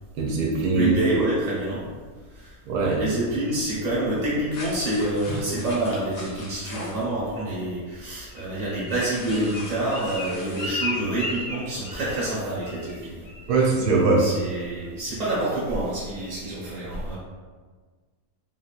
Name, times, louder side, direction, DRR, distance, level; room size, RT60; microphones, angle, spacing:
voice 1, 0.2-1.1 2.7-3.1 13.5-14.3, right 3 dB, 80° right, -2 dB, 1.1 m, -21 dB
voice 2, 0.7-1.9 2.4-2.5 2.8-13.2 14.2-17.2, right 1 dB, 30° right, -8 dB, 1.0 m, -27 dB
sound 1, 4.5-7.0 8.9-10.7, left 1 dB, 65° left, 1.0 m, -39 dB
Bird, 8.3-12.3 12.6-13.0 13.3-13.6 13.9-14.3 14.7-14.8, left 2 dB, 90° left, 1.4 m, -34 dB
3.0 x 2.6 x 2.4 m, 1.5 s
omnidirectional pair, 1.6 m